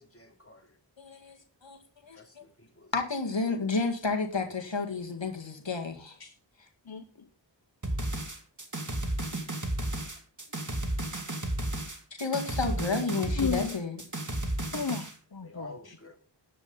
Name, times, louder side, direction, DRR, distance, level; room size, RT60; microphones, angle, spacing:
voice 1, 0.0-0.8 2.1-2.9 15.4-16.2, left 1 dB, 30° left, 3 dB, 2.8 m, -49 dB
voice 2, 1.0-2.4 2.9-6.2 12.1-14.0, left 4 dB, 90° left, 4 dB, 2.0 m, -31 dB
voice 3, 6.8-7.3 13.4-13.8 14.7-16.0, left 6 dB, 60° left, 10 dB, 1.0 m, -34 dB
sound 1, 7.8-15.1, right 1 dB, 45° right, 2.3 m, -33 dB
13.5 x 9.8 x 4.0 m, 0.34 s
wide cardioid pair, 40°, 43 cm